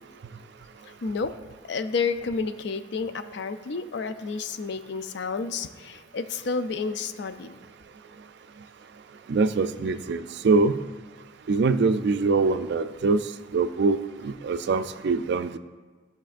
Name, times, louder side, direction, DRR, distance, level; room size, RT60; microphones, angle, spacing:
voice 1, 0.8-1.3 1.6-7.6, left 4 dB, 60° left, 10 dB, 0.4 m, -30 dB
voice 2, 9.3-10.8 11.5-13.2 13.5-15.6, right 3 dB, 60° right, 11 dB, 0.3 m, -23 dB
12.5 x 6.0 x 2.5 m, 1.4 s
head